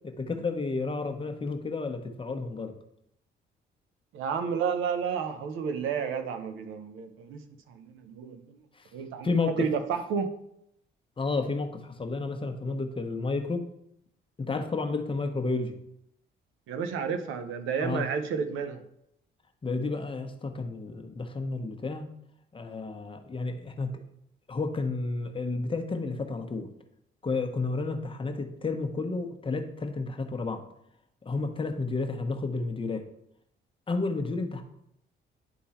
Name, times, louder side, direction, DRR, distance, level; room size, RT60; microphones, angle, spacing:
voice 1, 0.0-2.7 8.8-8.9 9.2-9.7 11.2-13.7 14.4-15.7 17.8-18.0 19.6-22.1 22.5-23.9 24.5-26.7 27.2-30.6 31.2-33.0 33.9-34.6, left 3 dB, 25° left, 4 dB, 1.0 m, -31 dB
voice 2, 4.1-8.6 8.9-10.3 16.7-18.8, right 6 dB, 85° right, 7 dB, 0.8 m, -31 dB
10.0 x 3.8 x 4.3 m, 0.77 s
cardioid pair, 90°, 20 cm